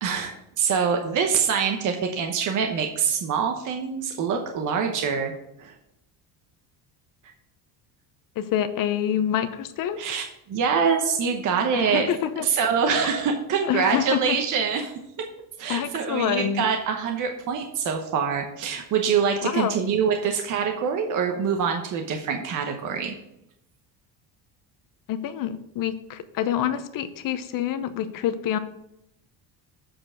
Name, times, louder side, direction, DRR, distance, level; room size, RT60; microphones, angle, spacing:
voice 1, 0.0-5.3 5.6-5.7 10.0-12.1 12.4-14.9 15.6-23.1, right 6 dB, 45° right, 4 dB, 0.9 m, -25 dB
voice 2, 8.4-10.0 11.7-12.5 13.7-14.4 15.7-16.7 19.4-19.7 25.1-28.6, left 10 dB, 50° left, 10 dB, 0.8 m, -27 dB
7.7 x 4.6 x 6.2 m, 0.80 s
cardioid pair, 150°, 43 cm